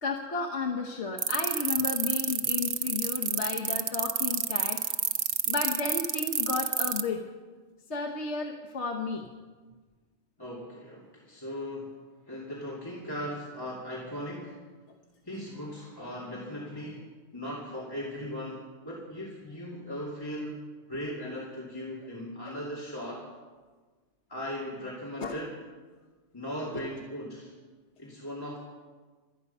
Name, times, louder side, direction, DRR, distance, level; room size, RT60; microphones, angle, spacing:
voice 1, 0.0-4.8 5.5-7.3 7.9-9.3 22.4-22.5 25.2-25.4, left 4 dB, 65° left, 0 dB, 1.4 m, -33 dB
sound 1, 1.2-7.0, right 7 dB, 50° right, 0.8 m, -27 dB
voice 2, 10.4-11.9 12.3-14.6 15.2-17.1 17.3-20.6 20.9-23.3 24.3-25.5 26.3-27.5 28.0-28.6, equal, 20° left, -6 dB, 2.6 m, -38 dB
26.5 x 9.5 x 5.5 m, 1.4 s
omnidirectional pair, 1.2 m